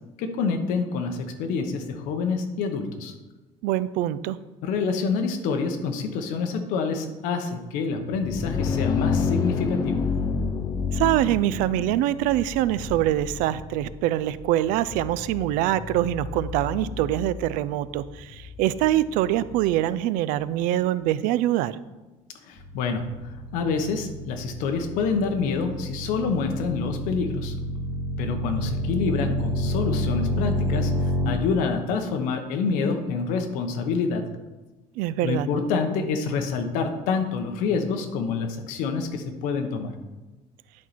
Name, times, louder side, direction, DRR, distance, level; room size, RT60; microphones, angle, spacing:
voice 1, 0.2-3.1 4.6-10.1 22.5-27.5 28.2-34.2 35.2-39.9, left 5 dB, 80° left, 5 dB, 1.0 m, -27 dB
voice 2, 3.6-4.4 10.9-21.8 35.0-35.5, right 13 dB, 85° right, 17 dB, 0.4 m, -24 dB
sound 1, 8.0-19.7, left 5 dB, 25° left, 0.4 m, -30 dB
sound 2, 22.5-31.3, left 1 dB, 10° right, 2.4 m, -29 dB
10.5 x 4.5 x 4.2 m, 1.1 s
cardioid pair, 175°, 14 cm